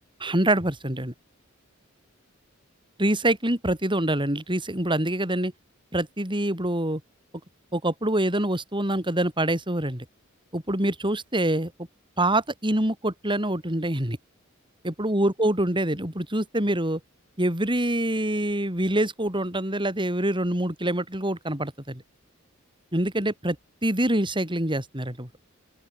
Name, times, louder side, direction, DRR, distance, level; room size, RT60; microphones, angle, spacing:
voice 1, 0.2-1.1 3.0-5.5 5.9-7.0 7.7-10.0 10.5-11.7 12.2-14.2 14.8-17.0 17.4-22.0 22.9-23.6 23.8-25.3, right 1 dB, 25° right, 7.6 m, -25 dB
open air
head